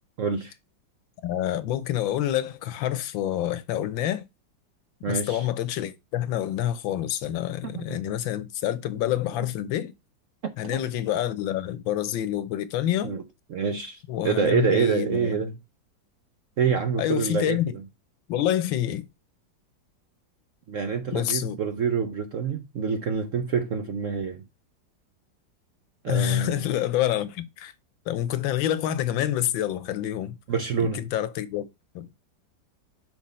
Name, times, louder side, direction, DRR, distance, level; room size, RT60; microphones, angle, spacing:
voice 1, 0.2-0.5 5.0-5.4 7.6-8.0 10.6-10.8 13.0-13.2 13.5-15.6 16.6-17.8 20.7-24.4 26.0-26.7 30.5-31.0, right 6 dB, 65° right, 0.8 m, -27 dB
voice 2, 1.2-4.2 5.1-9.9 10.6-13.1 14.1-15.4 17.0-17.7 18.3-19.0 21.1-21.6 26.1-27.7 28.1-30.4 30.8-31.6 31.9-32.1, left 12 dB, 85° left, 1.5 m, -27 dB
6.1 x 4.5 x 4.1 m
omnidirectional pair, 2.1 m